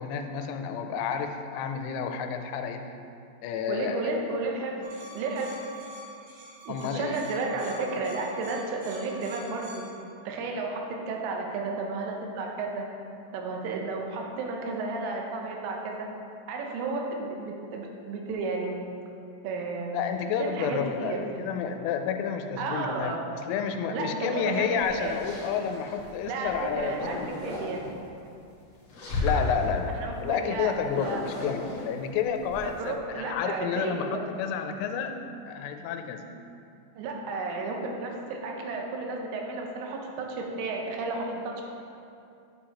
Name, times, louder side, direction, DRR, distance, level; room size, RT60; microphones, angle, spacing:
voice 1, 0.0-2.8 3.4-4.2 6.7-7.2 19.9-27.3 29.2-29.9 30.2-35.2 35.5-36.2, left 7 dB, 85° left, 6 dB, 3.1 m, -30 dB
voice 2, 3.7-4.9 5.1-5.6 6.7-9.7 10.3-12.8 13.3-16.0 16.5-18.8 19.4-20.0 20.4-21.2 22.6-23.2 23.9-25.1 26.2-27.8 30.0-31.2 32.6-34.1 37.0-41.6, right 3 dB, 85° right, 0 dB, 3.5 m, -32 dB
sound 1, 4.8-9.9, right 1 dB, 65° right, 3.0 m, -46 dB
sound 2, 24.5-26.1 26.5-27.9 28.7-29.7 30.8-32.9, left 2 dB, 70° left, 1.5 m, -34 dB
10.0 x 7.5 x 2.9 m, 2.6 s
omnidirectional pair, 5.5 m